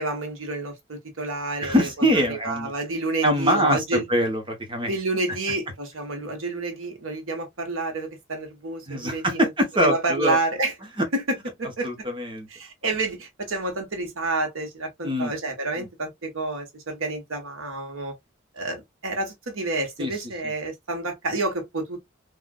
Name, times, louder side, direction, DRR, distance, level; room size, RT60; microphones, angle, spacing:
voice 1, 0.0-1.9 2.3-4.0 4.9-9.5 9.8-10.7 11.1-11.9 12.5-18.1 18.6-22.0, right 2 dB, 85° right, 1.3 m, -29 dB
voice 2, 1.6-2.7 3.2-4.9 8.9-10.4 11.8-12.5 15.0-15.3 15.8-15.9 20.0-20.1 20.4-20.5, equal, 25° right, 1.0 m, -23 dB
3.7 x 2.4 x 2.3 m
head